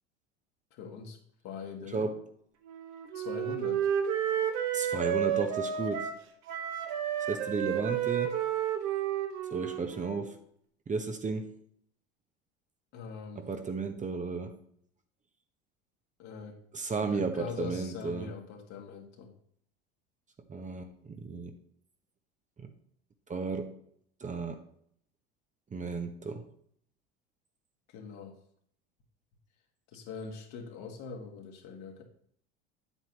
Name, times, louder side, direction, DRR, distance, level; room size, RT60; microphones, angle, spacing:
voice 1, 0.7-1.2 1.4-2.1 3.1-3.9 12.9-13.4 16.2-16.6 17.0-19.3 27.9-28.3 29.9-32.0, left 5 dB, 55° left, 2.0 m, -42 dB
Wind instrument woodwind instrument, 2.7-10.3, right 9 dB, 55° right, 1.4 m, -31 dB
voice 2, 4.7-6.1 7.3-8.3 9.5-10.3 10.9-11.5 13.4-14.5 16.7-18.3 20.5-21.5 22.6-22.7 23.3-23.7 24.2-24.6 25.7-26.4, right 4 dB, 25° right, 1.1 m, -33 dB
9.0 x 8.1 x 3.0 m
hypercardioid pair, 80°, 32 cm